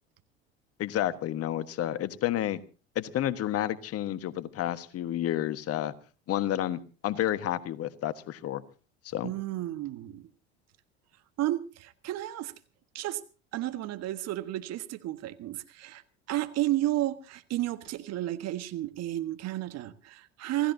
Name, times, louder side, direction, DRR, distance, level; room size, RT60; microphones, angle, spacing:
voice 1, 0.8-2.6 2.9-5.9 6.3-8.6 9.0-9.3, left 12 dB, 45° left, 1.4 m, -30 dB
voice 2, 9.2-10.3 11.4-12.5 12.9-13.2 13.5-16.0 16.3-20.7, right 15 dB, 50° right, 1.5 m, -32 dB
27.0 x 16.0 x 2.7 m
hypercardioid pair, 75°, 33 cm